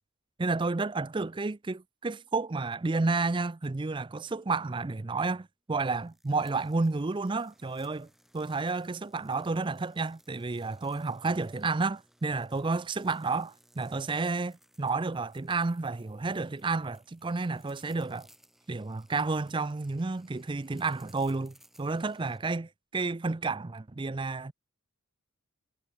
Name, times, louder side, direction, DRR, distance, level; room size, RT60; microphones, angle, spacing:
voice 1, 0.4-8.1 8.3-18.3 18.7-24.5, right 3 dB, 20° right, 0.4 m, -31 dB
sound 1, 6.0-22.4, equal, ahead, 5.6 m, -63 dB
head